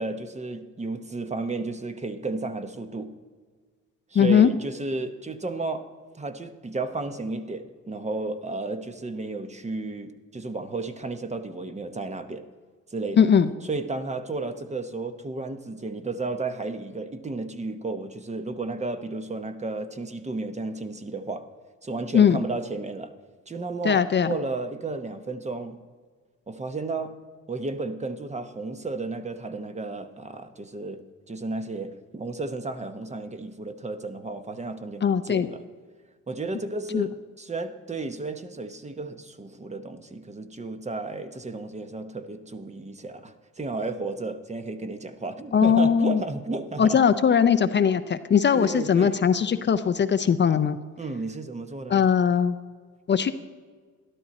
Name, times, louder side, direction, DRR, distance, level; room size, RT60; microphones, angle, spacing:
voice 1, 0.0-3.2 4.1-5.9 6.1-12.5 12.9-13.3 13.6-21.5 21.8-23.1 23.5-25.8 26.5-27.2 27.5-31.0 31.3-35.6 36.3-47.0 48.5-49.2 51.0-52.1, right 3 dB, 25° right, 9 dB, 0.9 m, -33 dB
voice 2, 4.1-4.5 13.2-13.5 22.1-22.4 23.8-24.3 35.0-35.5 36.9-37.1 45.5-46.2 46.8-50.8 51.9-52.6 53.1-53.3, left 7 dB, 35° left, 10 dB, 0.6 m, -20 dB
12.5 x 12.0 x 4.2 m, 1.5 s
cardioid pair, 90°, 30 cm